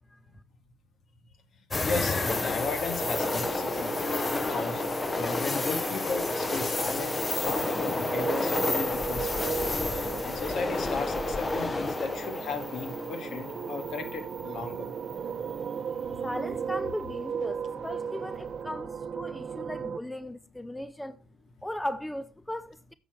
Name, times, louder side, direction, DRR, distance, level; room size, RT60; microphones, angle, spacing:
sound 1, 1.7-14.7 15.1-15.2 17.7-18.1, left 3 dB, 30° left, 1.0 m, -31 dB
voice 1, 1.8-4.8 5.2-15.0, left 4 dB, 65° left, 1.9 m, -36 dB
sound 2, 3.0-20.0, right 6 dB, 50° right, 0.8 m, -36 dB
voice 2, 16.2-21.2 21.6-22.9, left 1 dB, 10° left, 0.5 m, -37 dB
9.9 x 7.0 x 4.4 m
supercardioid pair, 75°, 0 cm